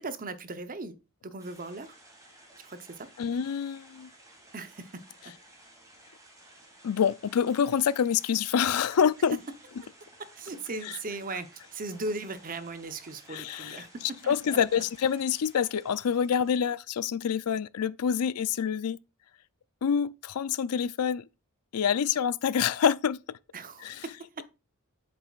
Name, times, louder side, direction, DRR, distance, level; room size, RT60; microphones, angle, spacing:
voice 1, 0.0-2.0 2.6-3.1 4.5-5.0 9.8-9.9 10.4-14.8 23.5-24.3, right 3 dB, 40° right, 0.8 m, -38 dB
sound 1, 1.4-16.6, right 1 dB, 15° right, 2.5 m, -56 dB
voice 2, 3.2-4.1 6.8-9.4 13.3-13.9 14.3-19.0 19.8-21.2 21.7-23.4 23.8-24.0, left 7 dB, 85° left, 0.4 m, -27 dB
8.0 x 7.0 x 2.4 m
head